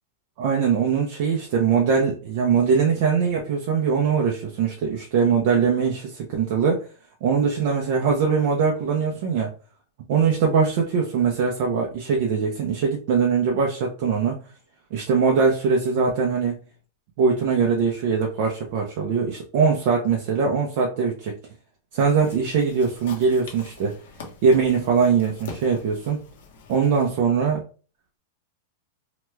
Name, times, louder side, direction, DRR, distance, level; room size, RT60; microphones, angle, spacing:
voice 1, 0.4-6.8 7.2-9.5 10.1-14.4 14.9-16.6 17.2-21.4 21.9-23.9 24.4-26.2 26.7-27.6, right 5 dB, 50° right, 0 dB, 0.6 m, -21 dB
sound 1, 22.0-27.1, left 5 dB, 65° left, 0.8 m, -44 dB
2.9 x 2.2 x 3.2 m, 0.37 s
supercardioid pair, 160°, 0 cm